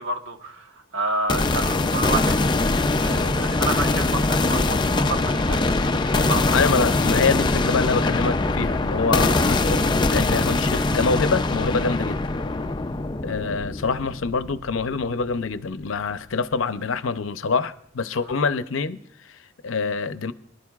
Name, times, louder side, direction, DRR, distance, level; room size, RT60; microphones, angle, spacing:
voice 1, 0.0-2.4 3.0-6.7 9.1-9.2, right 2 dB, 75° right, 1.2 m, -30 dB
sound 1, 1.3-15.2, left 2 dB, 25° left, 0.5 m, -22 dB
voice 2, 6.5-12.2 13.2-20.3, left 4 dB, 80° left, 0.6 m, -25 dB
24.0 x 11.5 x 2.4 m
head